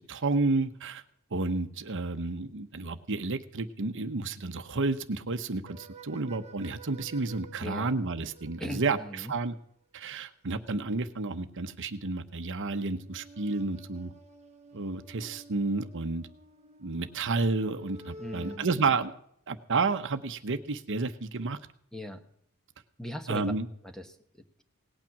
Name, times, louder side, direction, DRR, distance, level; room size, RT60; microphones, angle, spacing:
voice 1, 0.1-1.0 1.3-9.0 9.3-9.5 9.9-14.1 14.7-16.3 16.8-19.1 19.5-21.6 23.3-23.7, right 3 dB, 60° right, 9 dB, 0.9 m, -31 dB
sound 1, 5.7-9.6 12.9-18.6, right 1 dB, 30° right, 1.1 m, -50 dB
voice 2, 7.6-8.0 8.6-9.3 18.2-19.0 21.9-22.2 23.0-23.5 23.8-24.6, left 1 dB, 5° left, 7 dB, 1.1 m, -40 dB
18.5 x 9.0 x 5.9 m, 0.68 s
head